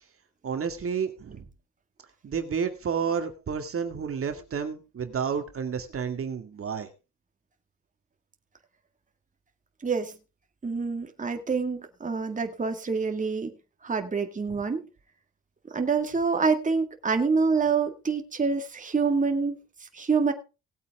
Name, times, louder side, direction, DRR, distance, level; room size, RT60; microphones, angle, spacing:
voice 1, 0.4-1.5 2.2-6.9 14.5-14.6, right 6 dB, 45° right, 6 dB, 2.2 m, -30 dB
voice 2, 9.8-10.1 10.6-13.5 13.8-14.8 15.7-20.3, right 5 dB, 25° right, 5 dB, 2.1 m, -26 dB
19.0 x 8.4 x 3.7 m, 0.31 s
cardioid pair, 90°, 30 cm